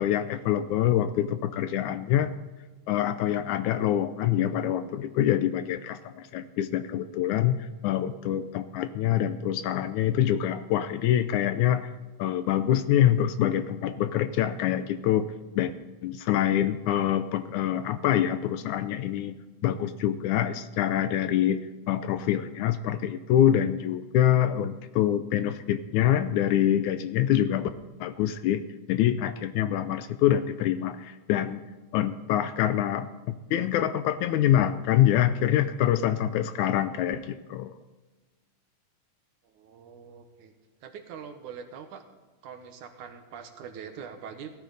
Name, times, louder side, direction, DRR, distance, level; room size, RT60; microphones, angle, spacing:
voice 1, 0.0-2.3 2.9-11.9 12.2-15.3 15.6-15.7 16.0-19.4 19.6-21.6 21.9-27.7 28.0-31.6 31.9-33.1 33.5-37.7, left 11 dB, 80° left, 11 dB, 1.9 m, -25 dB
voice 2, 39.4-40.5 40.8-42.0 42.4-44.5, right 7 dB, 75° right, 7 dB, 2.5 m, -43 dB
17.5 x 12.5 x 4.0 m, 1.2 s
omnidirectional pair, 3.7 m